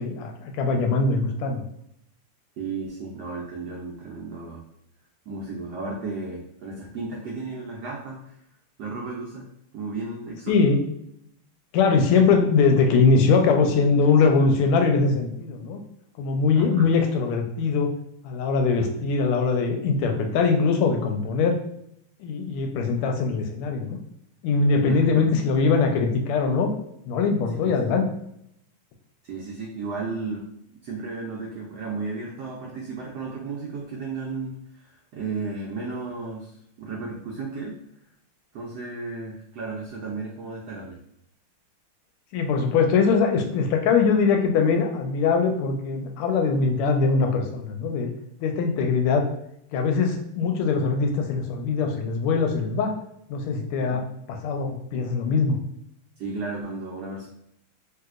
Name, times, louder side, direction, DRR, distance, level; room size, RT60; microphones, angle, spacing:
voice 1, 0.0-1.6 10.5-10.8 11.7-15.8 16.2-17.9 18.2-21.5 22.2-24.0 24.4-26.7 27.1-28.1 42.3-48.1 48.4-49.2 49.7-52.9 53.3-54.0 54.3-55.6, left 4 dB, 90° left, 4 dB, 1.5 m, -22 dB
voice 2, 2.6-4.6 5.3-8.3 8.8-9.4 9.7-10.7 16.6-16.9 24.8-25.3 27.5-27.8 29.2-30.4 30.8-36.5 36.8-37.8 38.5-41.0 53.8-54.0 56.2-57.3, right 3 dB, 85° right, -2 dB, 0.8 m, -34 dB
3.2 x 2.8 x 2.3 m, 0.75 s
omnidirectional pair, 2.3 m